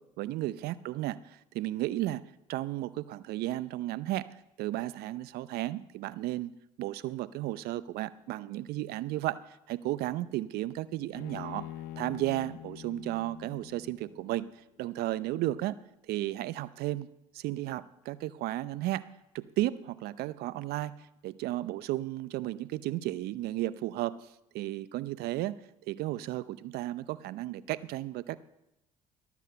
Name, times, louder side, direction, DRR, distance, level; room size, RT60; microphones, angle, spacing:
voice 1, 0.2-2.2 2.5-4.3 4.6-6.5 6.8-11.7 12.0-14.5 14.8-15.8 16.1-17.1 17.3-19.1 19.3-24.2 24.5-25.6 25.9-28.4, right 15 dB, 65° right, 17 dB, 0.6 m, -34 dB
Bowed string instrument, 11.1-14.4, left 13 dB, 70° left, 0.6 m, -45 dB
13.0 x 7.1 x 6.8 m, 0.87 s
hypercardioid pair, 65°, 17 cm